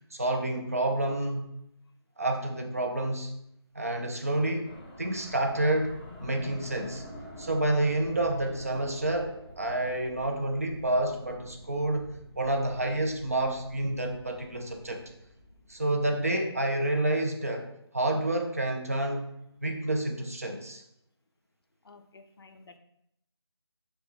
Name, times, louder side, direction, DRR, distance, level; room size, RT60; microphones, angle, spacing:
voice 1, 0.1-1.4 2.2-3.3 3.8-4.7 5.0-5.9 6.2-7.0 7.4-12.1 12.4-15.0 15.7-17.6 17.9-19.3 19.6-20.8, right 1 dB, 35° right, 3 dB, 0.3 m, -29 dB
sound 1, 4.6-17.2, left 1 dB, 20° left, 0.6 m, -48 dB
voice 2, 21.8-22.8, left 3 dB, 60° left, 7 dB, 0.4 m, -53 dB
3.4 x 2.2 x 3.2 m, 0.79 s
figure-of-eight pair, 175°, 14 cm